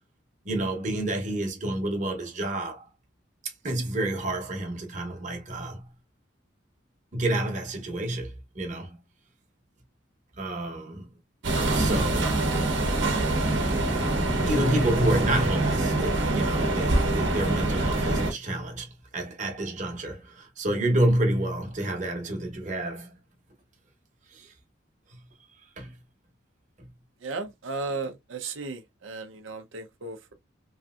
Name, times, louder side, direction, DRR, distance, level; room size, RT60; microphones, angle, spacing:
voice 1, 0.4-2.9 3.4-5.9 7.1-9.0 10.4-11.1 11.7-12.4 14.5-23.1 24.3-24.5 25.1-25.2 25.8-25.9 26.8-26.9, right 1 dB, 40° right, 0.9 m, -29 dB
sound 1, 11.4-18.3, right 2 dB, 70° right, 0.9 m, -25 dB
voice 2, 27.2-30.3, right 3 dB, 90° right, 0.6 m, -35 dB
3.1 x 2.7 x 2.3 m
head